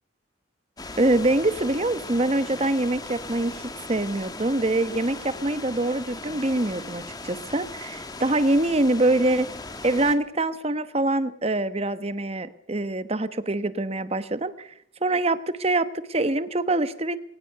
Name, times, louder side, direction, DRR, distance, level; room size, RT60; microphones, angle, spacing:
sound 1, 0.8-10.2, left 3 dB, 20° left, 1.4 m, -38 dB
voice 1, 1.0-9.5 9.8-14.7 15.0-17.2, right 2 dB, 35° right, 13 dB, 1.1 m, -24 dB
21.0 x 19.0 x 6.8 m, 0.68 s
head